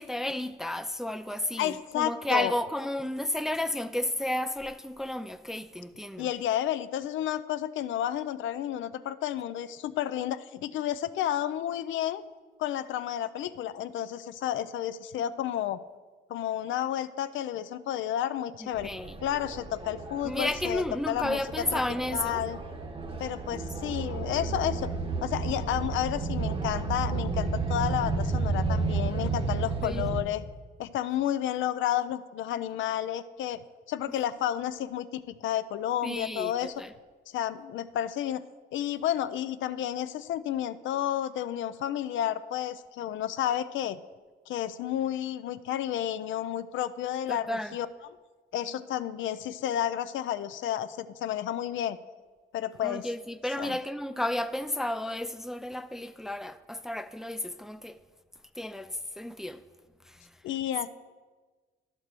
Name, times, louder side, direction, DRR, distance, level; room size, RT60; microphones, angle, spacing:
voice 1, 0.0-6.3 18.6-19.1 20.2-22.4 29.8-30.0 36.0-36.9 47.3-47.7 52.8-58.0 58.6-59.6 60.1-60.2, left 1 dB, ahead, 0.3 m, -32 dB
voice 2, 1.6-2.5 6.2-12.2 12.6-15.8 16.3-18.9 19.2-21.8 22.1-22.6 23.2-24.9 25.2-30.4 30.8-33.6 33.9-36.8 37.3-38.4 38.7-44.0 44.5-47.9 48.5-52.0 52.5-53.1 53.6-53.8 60.4-60.9, left 11 dB, 75° left, 0.5 m, -31 dB
sound 1, 18.7-30.2, right 4 dB, 25° right, 1.0 m, -32 dB
11.0 x 4.5 x 6.8 m
cardioid pair, 90°, 20 cm